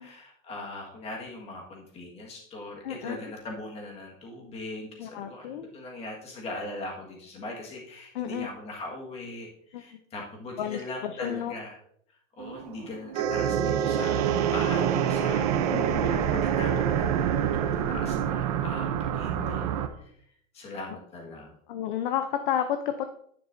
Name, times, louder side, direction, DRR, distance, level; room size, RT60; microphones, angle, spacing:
voice 1, 0.0-11.8 12.4-19.6 20.0-20.1 20.5-21.6, left 2 dB, 15° left, 0 dB, 1.7 m, -40 dB
voice 2, 2.8-3.2 5.0-5.7 8.1-8.5 9.7-10.0 10.6-11.5 15.7-16.2 19.4-19.9 21.7-23.1, left 10 dB, 40° left, 8 dB, 0.6 m, -32 dB
sound 1, 12.4-19.9, right 9 dB, 30° right, 0.6 m, -26 dB
11.0 x 9.9 x 2.6 m, 0.67 s
supercardioid pair, 170°, 39 cm